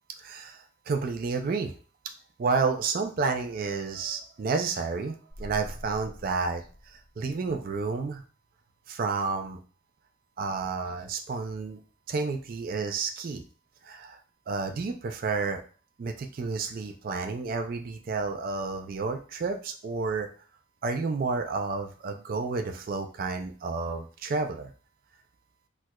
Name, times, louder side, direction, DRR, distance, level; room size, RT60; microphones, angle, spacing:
voice 1, 0.2-1.7 2.4-8.2 8.9-9.6 10.4-11.8 12.1-13.4 13.8-14.2 14.5-15.6 16.0-20.3 20.8-24.7, right 4 dB, 45° right, 5 dB, 0.3 m, -30 dB
sound 1, 5.3-7.6, equal, 20° left, 0.7 m, -44 dB
4.3 x 2.3 x 2.2 m, 0.39 s
head